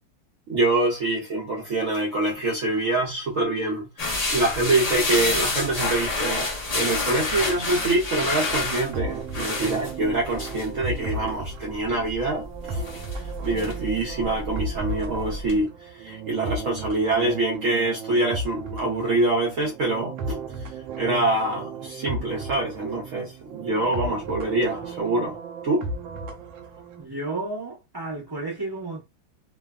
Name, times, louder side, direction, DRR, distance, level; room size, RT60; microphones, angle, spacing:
voice 1, 0.5-4.0 4.3-6.5 6.7-12.8 13.1-15.7 16.0-20.4 21.0-25.4 25.6-25.9, right 2 dB, 65° right, 0.8 m, -25 dB
sound 1, 4.0-15.6, left 2 dB, 75° left, 0.3 m, -29 dB
sound 2, 7.4-27.1, right 3 dB, 85° right, 1.4 m, -35 dB
voice 2, 27.0-29.0, right 2 dB, 30° right, 0.4 m, -32 dB
3.2 x 2.2 x 2.3 m
omnidirectional pair, 2.1 m